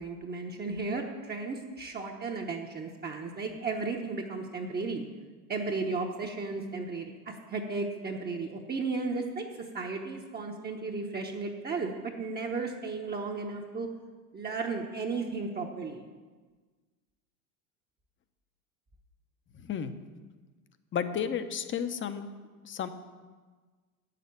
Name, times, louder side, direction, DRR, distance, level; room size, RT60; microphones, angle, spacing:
voice 1, 0.0-5.0 5.5-13.9 14.3-16.0, right 4 dB, 20° right, 0 dB, 1.0 m, -34 dB
voice 2, 19.5-19.9 20.9-22.3 22.6-22.9, left 8 dB, 25° left, 10 dB, 0.8 m, -32 dB
8.2 x 6.8 x 8.2 m, 1.4 s
hypercardioid pair, 95°, 46 cm